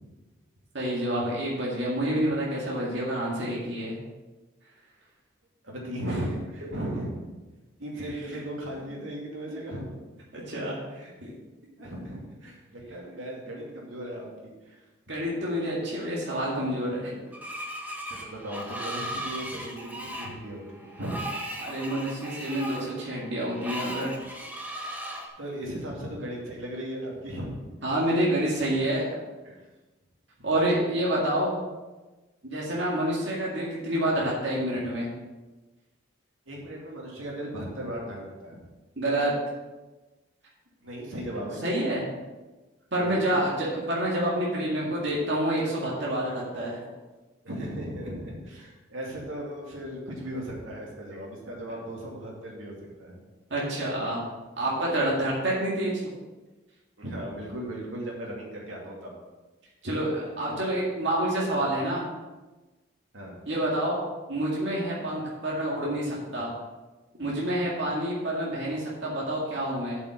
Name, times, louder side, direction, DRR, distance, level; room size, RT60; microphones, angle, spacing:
voice 1, 0.7-4.0 10.3-11.4 15.1-17.3 21.6-24.1 27.8-29.1 30.4-31.6 32.4-35.1 39.0-39.3 41.6-42.0 42.9-46.8 53.5-54.2 54.6-56.1 59.8-62.0 63.5-64.0 64.3-66.5 67.2-70.0, right 1 dB, 65° right, -5 dB, 2.1 m, -28 dB
voice 2, 5.6-7.1 7.8-9.8 10.4-10.5 11.8-14.8 18.1-21.2 25.4-27.7 29.4-29.6 30.4-30.5 36.5-38.6 40.8-41.7 43.0-43.2 47.4-53.2 57.0-59.1 63.1-63.4, right 1 dB, 90° right, -3 dB, 2.6 m, -37 dB
Screech, 17.3-25.3, equal, 10° right, 1.0 m, -37 dB
7.9 x 6.1 x 6.0 m, 1.2 s
head